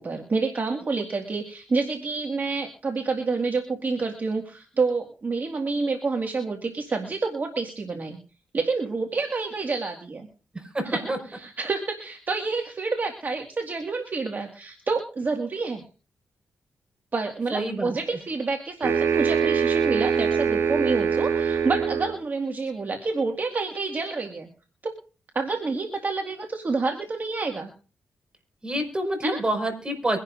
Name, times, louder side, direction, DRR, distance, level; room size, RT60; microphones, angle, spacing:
voice 1, 0.0-8.2 8.5-10.3 10.9-15.8 17.1-24.5 24.8-24.9 25.3-27.7 29.2-29.4, right 4 dB, 45° right, 2 dB, 2.0 m, -28 dB
voice 2, 10.5-11.2 17.5-18.2 28.6-30.2, right 1 dB, 20° right, 5 dB, 5.1 m, -28 dB
sound 1, 18.8-22.2, right 6 dB, 85° right, 6.7 m, -23 dB
23.5 x 11.0 x 2.6 m, 0.36 s
cardioid pair, 65°, 4 cm